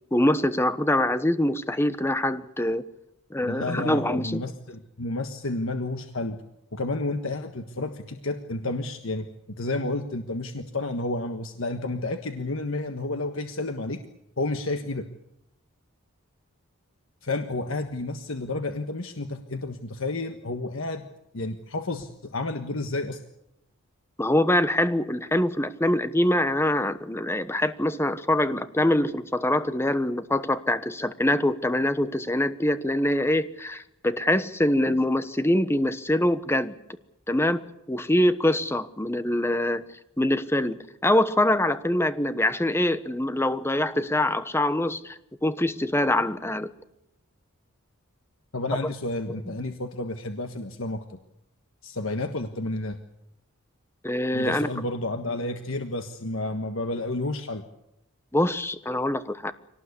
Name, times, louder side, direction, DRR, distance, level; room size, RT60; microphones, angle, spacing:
voice 1, 0.1-2.8 3.3-4.4 24.2-36.7 37.3-37.6 37.9-39.8 40.2-46.7 54.0-54.7 58.3-59.5, left 1 dB, 10° left, 1.1 m, -24 dB
voice 2, 3.4-6.4 6.7-14.0 14.4-15.1 17.2-21.1 21.3-23.2 48.5-51.2 51.8-53.0 54.3-57.6, left 2 dB, 65° left, 1.5 m, -31 dB
24.5 x 18.5 x 8.4 m
head